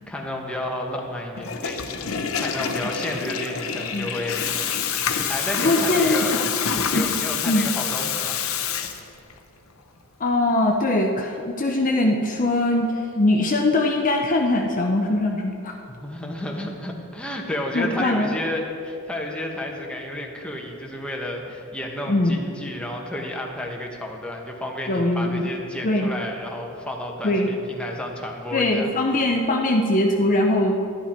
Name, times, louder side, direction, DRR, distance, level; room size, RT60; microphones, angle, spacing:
voice 1, 0.1-2.0 2.3-4.7 5.0-6.4 6.9-8.4 16.0-28.9, left 1 dB, 5° left, 0 dB, 1.2 m, -31 dB
Water tap faucet / Toilet flush, 1.3-9.4, left 7 dB, 70° left, 0.8 m, -27 dB
voice 2, 5.6-6.2 6.9-7.1 7.5-7.6 10.2-15.7 17.7-18.3 22.1-22.4 24.9-25.5 25.8-26.1 27.2-27.5 28.5-30.8, left 1 dB, 40° left, 1 dB, 0.7 m, -21 dB
11.5 x 11.0 x 4.4 m, 2.6 s
head